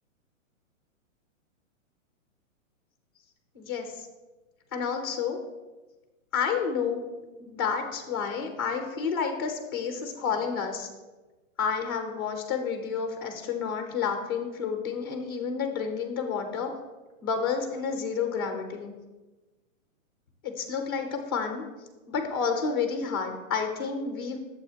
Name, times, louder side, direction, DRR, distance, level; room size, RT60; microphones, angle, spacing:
voice 1, 3.5-4.1 4.7-5.4 6.3-7.0 7.4-10.9 11.6-16.7 17.2-18.9 20.4-21.6 22.1-24.4, left 6 dB, 20° left, 5 dB, 0.6 m, -30 dB
8.8 x 7.6 x 2.7 m, 1.2 s
hypercardioid pair, 180°, 40 cm